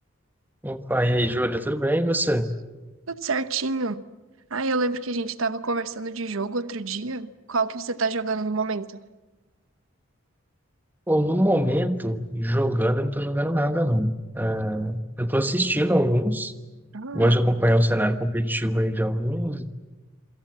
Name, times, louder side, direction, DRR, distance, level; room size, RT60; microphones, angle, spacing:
voice 1, 0.6-2.5 11.1-16.5 17.1-19.7, equal, 10° right, 1.2 m, -23 dB
voice 2, 3.1-4.0 4.5-9.0 16.9-17.3, right 3 dB, 85° right, 1.0 m, -28 dB
27.5 x 25.5 x 7.5 m
head